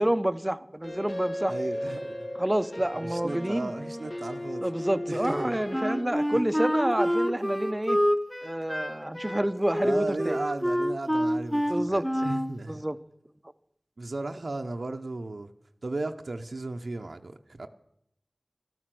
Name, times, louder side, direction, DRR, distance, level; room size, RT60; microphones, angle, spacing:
voice 1, 0.0-1.5 2.4-3.7 4.6-8.0 8.4-10.4 11.7-12.0 12.7-13.0, right 1 dB, 20° right, 0.7 m, -28 dB
sound 1, 0.8-6.0, left 1 dB, 65° left, 2.9 m, -35 dB
voice 2, 1.5-2.3 3.0-4.7 5.1-5.6 6.3-6.5 9.8-12.8 14.0-15.5 15.8-17.7, right 2 dB, 85° right, 0.8 m, -35 dB
Wind instrument woodwind instrument, 5.7-12.5, equal, 5° left, 1.2 m, -27 dB
13.5 x 12.5 x 7.6 m
wide cardioid pair, 55°, 0 cm